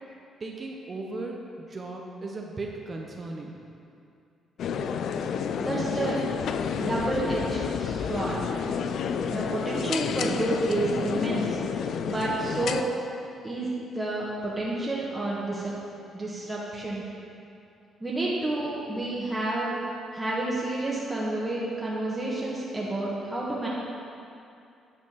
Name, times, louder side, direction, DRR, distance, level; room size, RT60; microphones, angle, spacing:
voice 1, 0.4-3.6, right 2 dB, 35° right, 1 dB, 0.7 m, -37 dB
sound 1, 4.6-12.8, left 7 dB, 70° left, 0.3 m, -30 dB
voice 2, 5.6-6.2 6.8-8.4 9.2-11.6 12.1-12.9 13.4-13.7 13.9-15.7 16.1-17.0 18.0-19.7 20.1-23.7, right 2 dB, 15° right, -6 dB, 1.3 m, -30 dB
9.1 x 4.3 x 5.8 m, 2.6 s
cardioid pair, 90°, 0 cm